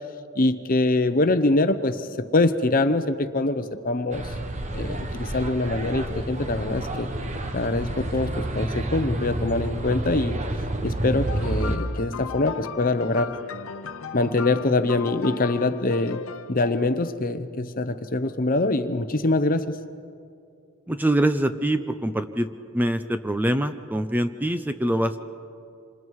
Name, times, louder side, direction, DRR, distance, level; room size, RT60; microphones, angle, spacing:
voice 1, 0.4-2.1 2.3-4.3 4.7-7.1 7.5-10.4 10.8-13.4 14.1-19.8, left 2 dB, 40° left, 10 dB, 0.9 m, -24 dB
sound 1, 4.1-11.8, right 1 dB, 35° right, 1.2 m, -29 dB
sound 2, 11.3-17.0, left 6 dB, 70° left, 0.8 m, -37 dB
voice 2, 20.9-22.5 22.7-25.2, right 1 dB, 10° right, 9 dB, 0.6 m, -24 dB
27.0 x 26.0 x 4.8 m, 2.5 s
head